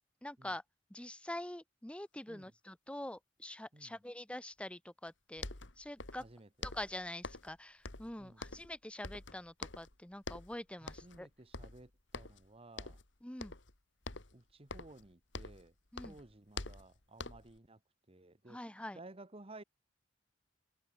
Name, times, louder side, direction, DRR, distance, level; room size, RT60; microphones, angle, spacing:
voice 1, 0.2-0.6 0.9-5.4 5.8-6.2 6.6-11.3 13.2-13.5 15.9-16.2 18.5-19.0, left 1 dB, 5° left, 0.8 m, -45 dB
sound 1, 5.1-5.2 5.4-6.3 6.6-7.6 7.8-8.8 9.0-9.9 10.2-10.5 10.9-11.2 11.5-12.5 12.8-13.1 13.4-13.7 14.0-15.7 15.9-17.6, left 3 dB, 75° left, 2.4 m, -46 dB
voice 2, 6.2-6.7 8.2-8.4 10.8-13.0 14.3-15.7 16.0-17.8 18.1-18.6 18.9-19.6, right 2 dB, 30° right, 1.4 m, -55 dB
head